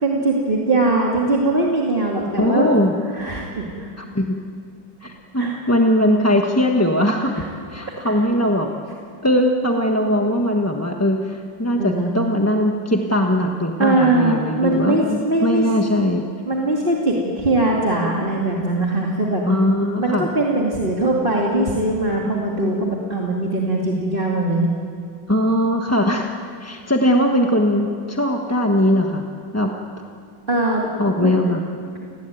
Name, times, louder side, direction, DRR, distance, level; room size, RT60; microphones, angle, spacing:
voice 1, 0.0-2.7 3.1-3.9 5.4-5.5 8.1-8.2 11.8-12.1 13.8-15.6 16.5-19.4 20.0-24.7 30.5-30.9 31.2-31.3, right 2 dB, 25° right, -3 dB, 2.6 m, -21 dB
voice 2, 2.4-2.9 4.0-4.4 5.0-7.4 7.7-8.7 9.2-16.2 19.5-20.3 25.3-26.3 26.6-29.3 29.5-29.7 31.0-31.6, left 1 dB, 10° left, 2 dB, 1.0 m, -20 dB
30.0 x 20.0 x 9.3 m, 2.3 s
omnidirectional pair, 2.2 m